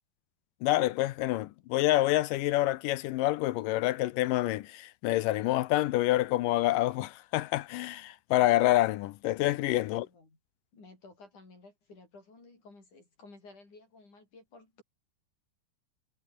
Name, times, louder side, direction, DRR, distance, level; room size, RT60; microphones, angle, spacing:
voice 1, 0.6-10.1, left 16 dB, 75° left, 2.1 m, -27 dB
voice 2, 9.9-10.4 10.7-14.8, left 3 dB, 50° left, 9.5 m, -54 dB
omnidirectional pair, 4.4 m